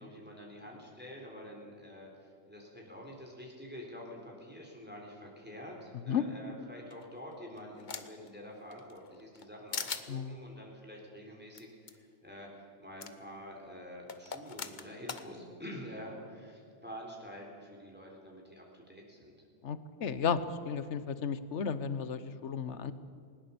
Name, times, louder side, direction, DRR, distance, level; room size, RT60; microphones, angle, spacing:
voice 1, 0.0-19.3, equal, 10° right, -1 dB, 3.6 m, -47 dB
sound 1, 6.9-8.3 8.7-9.5 9.7-10.1 11.5-11.6 11.9-12.0 13.0-13.1 14.1-15.2, left 5 dB, 40° left, 1.0 m, -40 dB
voice 2, 19.6-20.4 20.7-22.9, left 7 dB, 65° left, 13 dB, 1.2 m, -33 dB
20.0 x 19.0 x 7.0 m, 2.2 s
omnidirectional pair, 1.3 m